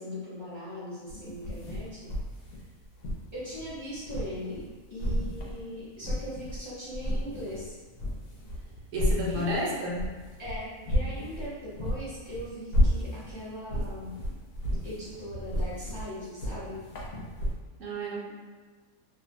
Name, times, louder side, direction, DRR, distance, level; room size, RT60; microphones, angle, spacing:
voice 1, 0.0-2.1 3.3-7.7 9.3-9.9 10.4-14.2 14.8-16.8, equal, 30° left, -11 dB, 0.5 m, -40 dB
sound 1, 1.1-4.7 5.0-6.6 6.9-17.5, equal, 85° left, 1.0 m, -32 dB
voice 2, 8.9-10.0 17.8-18.3, left 1 dB, 70° right, -4 dB, 0.9 m, -31 dB
2.6 x 2.1 x 2.5 m, 1.4 s
omnidirectional pair, 1.4 m